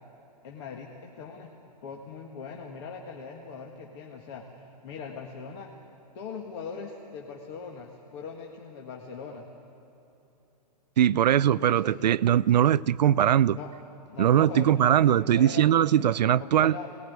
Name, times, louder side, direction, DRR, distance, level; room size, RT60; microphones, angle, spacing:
voice 1, 0.4-1.5 1.8-5.7 6.1-9.5 11.6-12.0 13.5-13.8 14.1-15.7 16.4-17.0, left 5 dB, 40° left, 0 dB, 1.8 m, -41 dB
voice 2, 11.0-13.6 14.2-16.8, right 10 dB, 80° right, 19 dB, 0.5 m, -21 dB
22.5 x 19.0 x 9.4 m, 2.9 s
hypercardioid pair, 155°, 21 cm